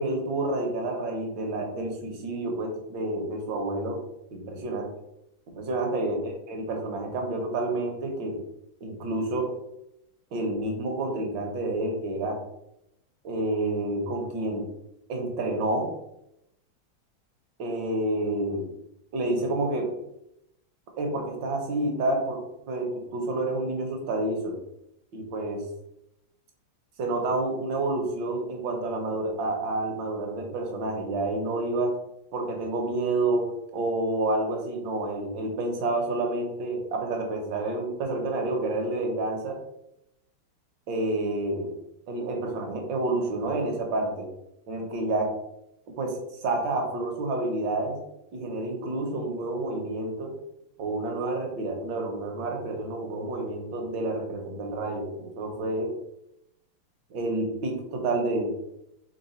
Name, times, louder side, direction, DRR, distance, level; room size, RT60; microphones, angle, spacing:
voice 1, 0.0-4.0 4.3-4.8 5.5-6.2 6.5-8.4 8.8-9.5 10.3-12.4 13.2-14.7 15.1-15.9 17.6-18.7 19.1-19.9 21.0-22.4 22.7-24.6 25.1-25.6 27.0-31.9 32.3-33.5 33.7-39.6 40.9-41.7 42.1-44.3 44.7-45.3 46.0-46.1 46.4-48.0 48.3-50.3 50.8-55.9 57.1-58.5, right 2 dB, 65° right, 2 dB, 1.6 m, -29 dB
3.9 x 3.1 x 4.2 m, 0.82 s
omnidirectional pair, 2.4 m